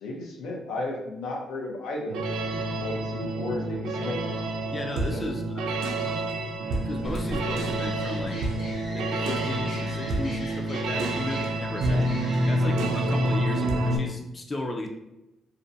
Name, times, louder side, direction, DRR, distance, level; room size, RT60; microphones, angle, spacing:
voice 1, 0.0-2.2 2.8-4.2 5.1-5.4 11.8-12.1, left 2 dB, 85° left, 0 dB, 0.6 m, -34 dB
sound 1, 2.1-14.0, right 1 dB, 85° right, 0.4 m, -28 dB
voice 2, 4.7-5.7 6.8-8.4 8.9-14.9, left 1 dB, 30° left, 3 dB, 0.4 m, -35 dB
sound 2, 7.0-12.9, equal, 60° left, 1.1 m, -41 dB
2.4 x 2.1 x 2.6 m, 0.93 s
cardioid pair, 90°, 0 cm